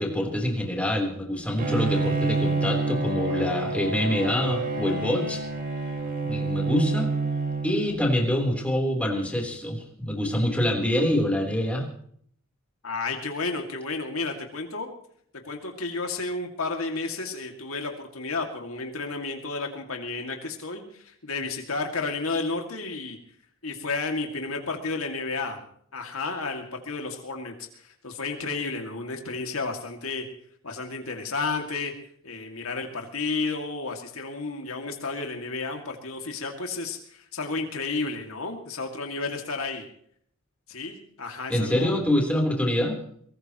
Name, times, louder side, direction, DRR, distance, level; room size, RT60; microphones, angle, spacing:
voice 1, 0.0-5.4 6.2-7.1 7.6-11.9 41.5-43.0, left 1 dB, 5° left, 0 dB, 3.7 m, -25 dB
Bowed string instrument, 1.6-8.3, right 3 dB, 40° right, 3.2 m, -28 dB
voice 2, 12.8-14.9 15.4-23.2 23.6-25.6 25.9-30.2 30.6-31.9 32.2-39.9 40.7-42.0, left 3 dB, 80° left, 3 dB, 2.4 m, -32 dB
23.0 x 19.0 x 3.1 m, 0.63 s
head